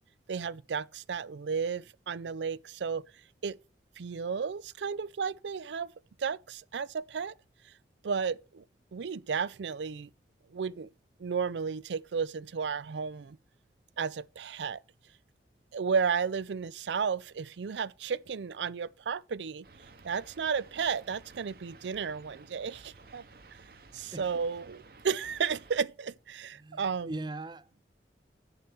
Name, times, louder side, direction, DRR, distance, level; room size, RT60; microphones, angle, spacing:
voice 1, 0.3-3.0 3.4-3.6 4.0-5.9 6.2-7.3 8.0-8.6 8.9-10.1 10.5-10.9 11.2-13.4 14.0-14.8 15.7-19.7 20.0-23.2 23.9-27.1, right 6 dB, 85° right, 0.5 m, -33 dB
sound 1, 19.6-25.8, right 3 dB, 55° right, 0.9 m, -54 dB
voice 2, 23.9-24.3 26.5-27.8, right 2 dB, 25° right, 0.5 m, -41 dB
7.9 x 6.9 x 7.0 m
head